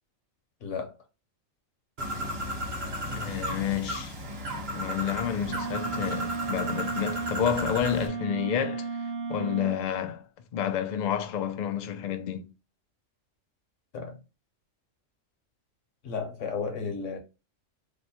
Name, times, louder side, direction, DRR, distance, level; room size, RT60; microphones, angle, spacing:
voice 1, 0.6-0.9 13.9-14.2 16.0-17.2, left 5 dB, 70° left, 1.1 m, -33 dB
Bird, 2.0-8.1, equal, 55° right, 1.1 m, -34 dB
voice 2, 3.1-4.1 4.7-8.9 9.3-10.2 10.5-12.5, left 9 dB, 90° left, 0.4 m, -30 dB
Wind instrument woodwind instrument, 5.4-9.8, right 4 dB, 75° right, 0.4 m, -34 dB
3.1 x 2.1 x 4.1 m
omnidirectional pair, 1.4 m